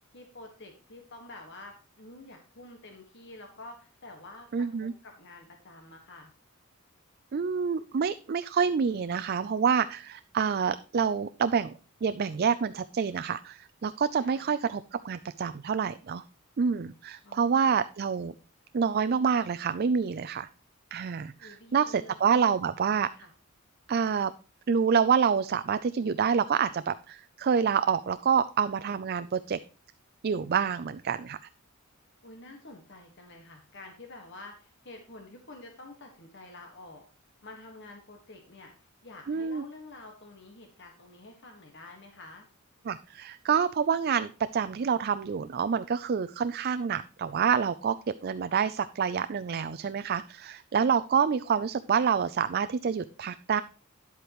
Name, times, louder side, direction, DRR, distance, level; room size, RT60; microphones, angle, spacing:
voice 1, 0.1-6.3 14.2-14.5 17.2-17.8 21.4-22.6 23.1-23.3 32.2-37.0 37.4-38.7 39.0-42.5, left 2 dB, 55° left, 3 dB, 1.6 m, -48 dB
voice 2, 4.5-4.9 7.3-11.7 12.0-16.2 16.6-18.3 18.7-20.5 20.9-23.1 23.9-24.3 24.7-29.6 30.2-31.4 39.3-39.6 42.9-48.0 48.2-53.6, right 6 dB, 45° right, 14 dB, 0.4 m, -27 dB
11.0 x 8.1 x 3.0 m, 0.38 s
head